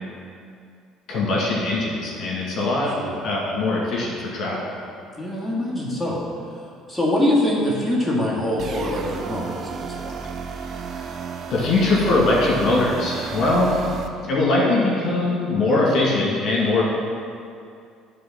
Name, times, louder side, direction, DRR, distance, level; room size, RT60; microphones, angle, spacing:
voice 1, 1.1-2.9 3.2-4.7 10.9-11.1 11.5-13.9 14.2-16.8, left 2 dB, 50° left, -4 dB, 2.2 m, -21 dB
voice 2, 5.2-6.2 6.9-10.2, left 1 dB, 5° left, -5 dB, 2.1 m, -24 dB
sound 1, 8.6-14.1, right 5 dB, 50° right, 0.7 m, -32 dB
11.0 x 3.9 x 5.9 m, 2.3 s
hypercardioid pair, 55°, 0 cm